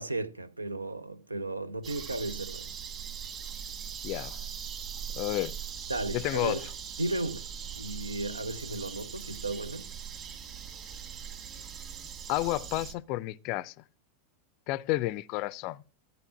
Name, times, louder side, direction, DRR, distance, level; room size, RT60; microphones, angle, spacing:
voice 1, 0.0-2.7 5.9-6.6 7.0-9.9, right 2 dB, 80° right, 0.7 m, -35 dB
sound 1, 1.8-12.9, right 7 dB, 30° right, 1.9 m, -41 dB
voice 2, 4.0-4.4 5.2-5.6 6.1-6.6 12.3-13.7 14.7-15.8, left 18 dB, 40° left, 0.4 m, -31 dB
13.5 x 4.7 x 7.3 m
figure-of-eight pair, 90°, 0 cm